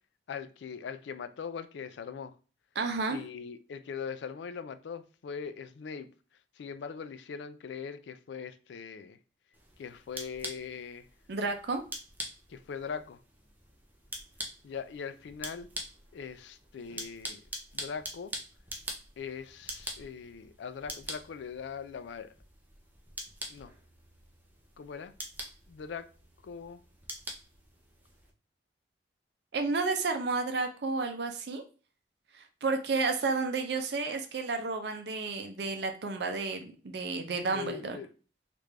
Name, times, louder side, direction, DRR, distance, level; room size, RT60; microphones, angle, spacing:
voice 1, 0.3-2.3 3.1-6.1 6.6-9.2 9.8-11.1 12.5-13.2 14.6-15.7 16.1-17.4 17.7-18.3 19.2-22.3 23.5-23.7 24.8-25.1 25.7-26.1 26.4-26.8 37.5-38.1, left 6 dB, 80° left, 0.3 m, -41 dB
voice 2, 2.8-3.2 11.3-11.8 29.5-31.6 32.3-38.0, right 4 dB, 70° right, 0.5 m, -31 dB
sound 1, 9.5-28.3, right 1 dB, 10° right, 0.5 m, -45 dB
3.3 x 2.5 x 3.2 m
head